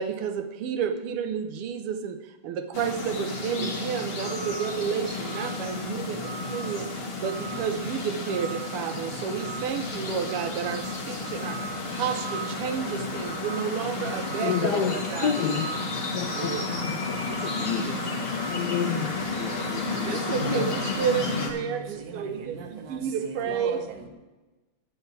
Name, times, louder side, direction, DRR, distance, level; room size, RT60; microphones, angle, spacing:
voice 1, 0.0-6.9 7.2-11.6 11.9-15.4 16.3-16.6 20.0-23.8, right 7 dB, 85° right, 1.7 m, -31 dB
sound 1, 2.7-21.5, left 2 dB, 35° left, 1.2 m, -32 dB
voice 2, 14.4-14.9 15.2-15.7 16.1-17.0 17.3-20.7, left 8 dB, 80° left, 0.9 m, -30 dB
voice 3, 19.4-24.1, right 3 dB, 55° right, 1.6 m, -40 dB
11.5 x 4.5 x 8.1 m
omnidirectional pair, 2.4 m